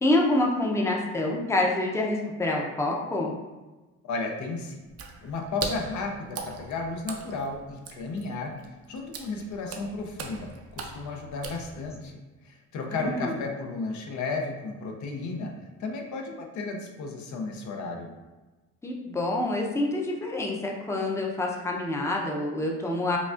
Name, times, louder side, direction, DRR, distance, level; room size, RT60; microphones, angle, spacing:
voice 1, 0.0-3.3 12.9-13.3 18.8-23.2, left 2 dB, 10° left, -1 dB, 0.6 m, -27 dB
voice 2, 4.0-4.8 5.2-8.5 8.9-12.2 12.4-15.5 15.8-18.1, left 3 dB, 70° left, 2 dB, 0.7 m, -33 dB
Water / Splash splatter, 4.9-12.1, right 5 dB, 55° right, 0.5 m, -40 dB
5.0 x 2.3 x 2.4 m, 1.2 s
cardioid pair, 90°, 30 cm